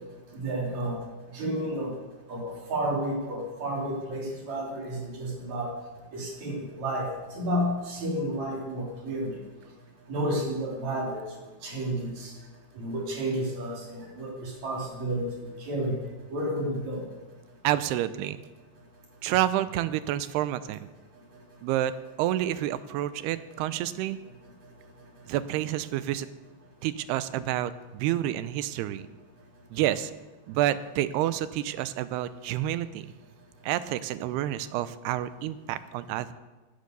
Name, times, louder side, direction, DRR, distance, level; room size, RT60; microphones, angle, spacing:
voice 1, 0.3-1.0 1.3-1.9 2.3-5.7 6.1-7.1 7.3-9.4 10.1-11.2 11.6-12.3 12.8-15.3 15.6-16.0 16.3-17.0, right 1 dB, 45° right, -1 dB, 4.7 m, -31 dB
voice 2, 17.6-18.4 19.2-20.9 21.6-24.2 25.3-26.3 26.8-29.1 29.7-30.1 30.5-33.1 33.6-36.3, right 13 dB, 90° right, 14 dB, 2.7 m, -29 dB
17.0 x 11.5 x 6.9 m, 1.2 s
omnidirectional pair, 4.6 m